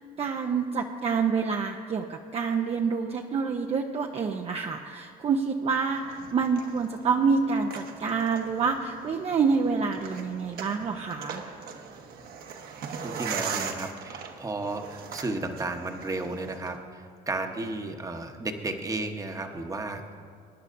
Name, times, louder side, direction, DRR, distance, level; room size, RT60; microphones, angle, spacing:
voice 1, 0.2-11.4, right 5 dB, 35° right, 3 dB, 0.6 m, -27 dB
sound 1, 5.9-16.8, right 6 dB, 65° right, 1.1 m, -40 dB
voice 2, 13.0-20.2, right 2 dB, 20° right, 4 dB, 1.0 m, -33 dB
23.0 x 10.0 x 2.6 m, 2.3 s
cardioid pair, 110°, 17 cm